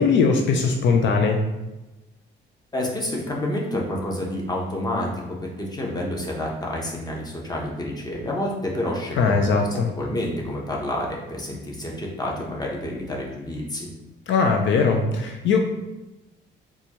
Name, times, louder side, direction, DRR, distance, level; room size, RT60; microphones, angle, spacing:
voice 1, 0.0-1.4 9.2-9.9 14.3-15.6, left 4 dB, 70° left, 3 dB, 0.5 m, -20 dB
voice 2, 2.7-5.1 5.4-13.9, left 1 dB, 20° left, -2 dB, 0.9 m, -29 dB
4.1 x 2.3 x 3.0 m, 1.0 s
cardioid pair, 90°, 20 cm